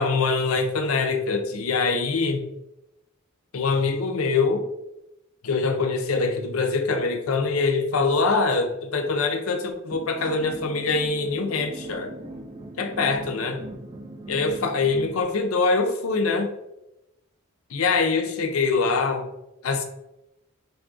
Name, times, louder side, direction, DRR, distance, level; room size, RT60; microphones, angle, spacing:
voice 1, 0.0-2.4 3.5-4.6 5.4-12.1 12.8-13.6 14.3-16.5 17.7-19.3 19.6-19.8, left 4 dB, 70° left, 5 dB, 0.5 m, -24 dB
sound 1, 9.9-15.2, right 1 dB, 20° right, 0.4 m, -39 dB
3.4 x 2.3 x 3.8 m, 0.90 s
head